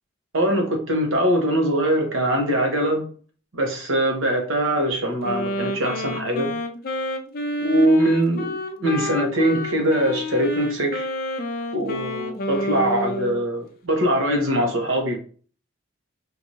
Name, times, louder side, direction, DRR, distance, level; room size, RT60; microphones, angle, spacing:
voice 1, 0.3-3.0 3.5-6.5 7.6-11.1 11.7-15.2, right 1 dB, 75° right, 1.0 m, -22 dB
Wind instrument woodwind instrument, 5.2-13.4, left 1 dB, 45° left, 0.4 m, -29 dB
4.6 x 2.6 x 2.7 m
head